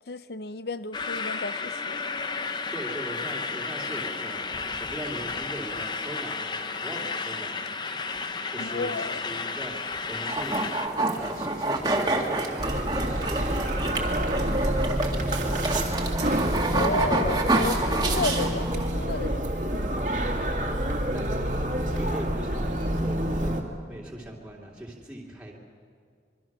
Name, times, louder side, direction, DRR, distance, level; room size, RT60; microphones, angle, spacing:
voice 1, 0.1-2.0 8.6-9.2 16.7-19.9, left 3 dB, 65° left, 0.7 m, -32 dB
sound 1, 0.9-10.9, left 4 dB, 25° left, 0.7 m, -32 dB
voice 2, 2.7-7.6 8.5-10.6 10.9-15.1 21.1-21.4 21.7-23.5 23.9-25.6, right 1 dB, 5° right, 2.8 m, -40 dB
sound 2, 10.3-18.9, right 2 dB, 25° right, 2.1 m, -28 dB
sound 3, 12.6-23.6, right 1 dB, 45° right, 2.2 m, -27 dB
26.0 x 23.0 x 6.1 m
head